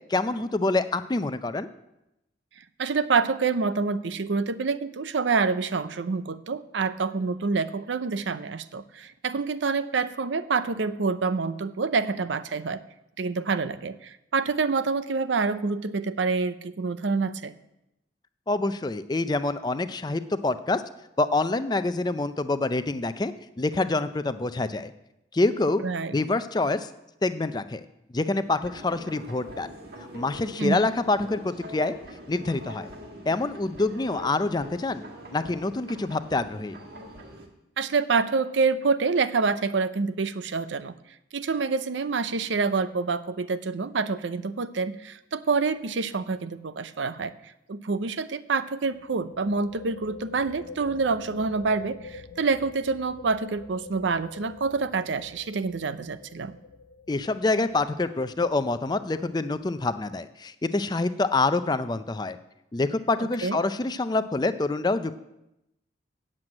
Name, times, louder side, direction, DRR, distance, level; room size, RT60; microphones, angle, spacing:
voice 1, 0.1-1.7 18.5-20.8 21.2-24.9 25.3-25.8 26.1-26.9 27.2-27.8 28.1-29.7 30.1-32.0 32.3-32.9 33.3-35.0 35.3-36.8 57.1-62.4 62.7-65.1, left 2 dB, 25° left, 11 dB, 0.4 m, -26 dB
voice 2, 2.8-12.8 13.2-17.5 25.8-26.2 30.6-30.9 37.8-40.9 41.3-47.3 47.7-56.6 63.2-63.6, right 4 dB, 90° right, 13 dB, 0.6 m, -27 dB
sound 1, 28.6-37.5, equal, 55° right, 1.7 m, -43 dB
sound 2, 45.7-46.0 46.2-46.3 48.8-60.2, left 3 dB, 85° left, 0.6 m, -46 dB
7.9 x 7.6 x 8.7 m, 0.88 s
head